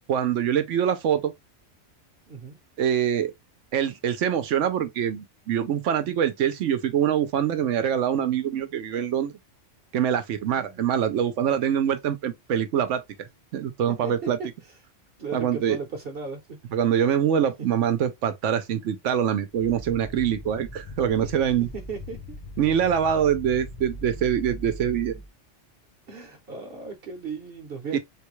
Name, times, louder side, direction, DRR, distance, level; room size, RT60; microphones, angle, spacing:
voice 1, 0.1-1.3 2.8-3.3 3.7-9.3 9.9-13.0 13.5-14.4 15.3-15.8 16.7-21.7 22.6-25.1 27.9-28.0, right 9 dB, 80° right, 1.0 m, -24 dB
voice 2, 2.3-2.6 10.5-10.9 14.0-14.8 15.2-16.6 21.7-22.4 23.1-23.3 24.9-25.2 26.1-28.0, right 4 dB, 55° right, 1.0 m, -37 dB
sound 1, 19.5-25.3, left 1 dB, 35° left, 0.9 m, -40 dB
3.6 x 2.2 x 3.1 m
omnidirectional pair, 1.2 m